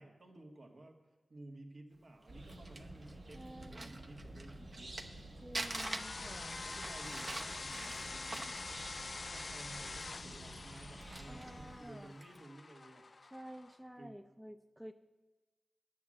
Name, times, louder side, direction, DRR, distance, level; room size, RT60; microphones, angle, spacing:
voice 1, 0.0-4.9 5.5-6.0 6.6-13.1 14.0-14.1, right 1 dB, 65° right, 2 dB, 1.6 m, -55 dB
Crumpling crinkling, 2.2-5.2 5.5-9.7 10.0-10.1 10.7-11.6 12.1-12.4, right 2 dB, 40° right, 0.8 m, -45 dB
sound 1, 2.3-11.8, right 1 dB, 90° right, 2.6 m, -51 dB
voice 2, 3.3-3.9 5.4-6.6 11.3-12.1 13.3-14.9, equal, 10° right, 8 dB, 0.4 m, -51 dB
sound 2, 5.6-13.8, left 3 dB, 55° left, 0.4 m, -46 dB
9.3 x 7.6 x 7.6 m, 1.2 s
wide cardioid pair, 70°, 0 cm